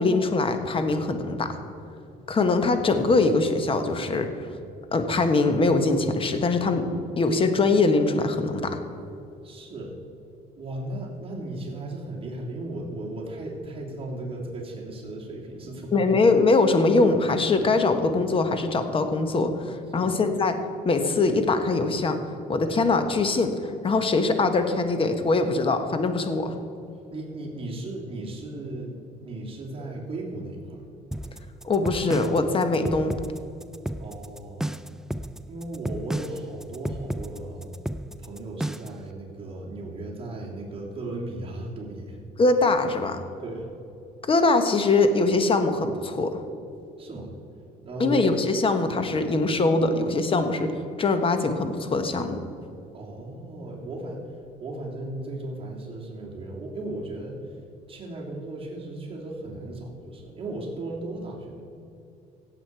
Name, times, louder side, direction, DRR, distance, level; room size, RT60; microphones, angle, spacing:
voice 1, 0.0-1.6 2.3-4.3 4.9-6.9 7.2-8.8 15.9-20.6 20.8-22.2 22.5-26.6 31.6-33.1 42.4-43.2 44.3-46.3 48.0-52.4, left 3 dB, 30° left, 8 dB, 1.3 m, -22 dB
voice 2, 9.4-10.0 10.6-16.2 19.9-20.2 27.1-30.9 34.0-34.8 35.5-37.7 38.2-42.2 43.4-43.7 47.0-47.3 47.8-48.4 52.9-54.2 54.6-57.5 57.9-61.6, right 2 dB, 35° right, -3 dB, 2.9 m, -36 dB
sound 1, 31.1-39.0, right 1 dB, 5° right, 0.4 m, -32 dB
16.5 x 8.1 x 4.6 m, 2.7 s
cardioid pair, 110°, 17 cm